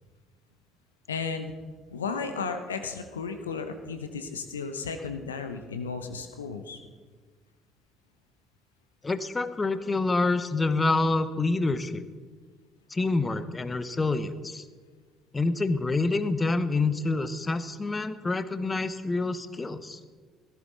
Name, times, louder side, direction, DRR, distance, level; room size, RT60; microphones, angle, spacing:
voice 1, 1.1-1.5 1.9-6.8, left 5 dB, 80° left, 8 dB, 0.9 m, -34 dB
voice 2, 9.0-12.0 12.9-14.6 15.3-20.0, left 3 dB, 25° left, 12 dB, 1.0 m, -27 dB
17.0 x 14.5 x 4.2 m, 1.5 s
figure-of-eight pair, 50°, 0 cm